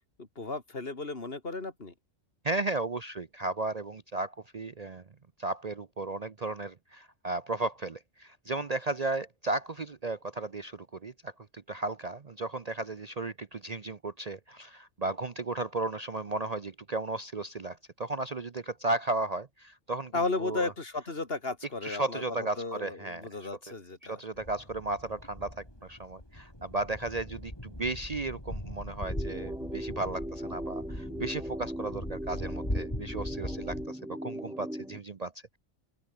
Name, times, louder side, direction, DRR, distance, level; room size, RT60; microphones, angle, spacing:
voice 1, 0.2-1.9 20.1-22.2 22.6-24.2, left 3 dB, 50° left, 2.9 m, -34 dB
voice 2, 2.4-5.0 5.4-20.1 20.4-20.7 21.8-23.5 24.0-35.6, right 2 dB, 35° right, 0.8 m, -35 dB
sound 1, 24.3-33.9, left 1 dB, 20° left, 6.6 m, -40 dB
sound 2, 29.0-35.0, equal, 5° right, 3.8 m, -39 dB
open air
omnidirectional pair, 1.3 m